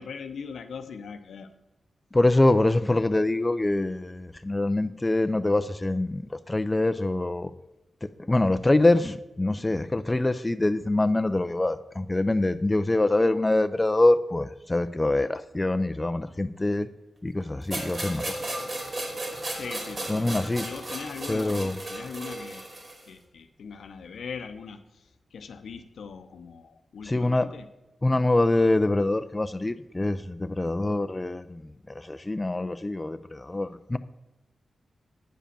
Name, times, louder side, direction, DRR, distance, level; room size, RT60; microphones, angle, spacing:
voice 1, 0.0-1.5 19.5-22.7 23.1-27.7, left 5 dB, 85° left, 0.7 m, -40 dB
voice 2, 2.1-7.5 8.2-16.9 17.2-18.4 20.1-20.7 21.3-21.8 27.0-27.5 28.0-34.0, left 2 dB, 20° left, 0.4 m, -24 dB
sound 1, 17.7-23.1, right 1 dB, 45° right, 2.5 m, -35 dB
8.8 x 5.0 x 6.7 m
cardioid pair, 60°, 0 cm